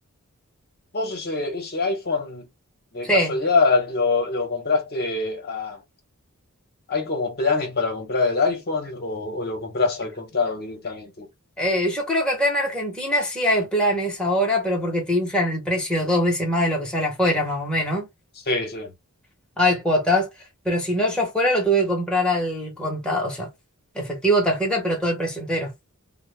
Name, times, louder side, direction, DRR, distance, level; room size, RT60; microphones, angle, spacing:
voice 1, 0.9-2.5 2.9-5.8 6.9-11.3 18.5-18.9, left 3 dB, 45° left, 0.8 m, -24 dB
voice 2, 11.6-18.1 19.6-20.3 20.6-23.5 23.9-25.7, equal, 5° left, 0.8 m, -22 dB
2.1 x 2.1 x 3.1 m
head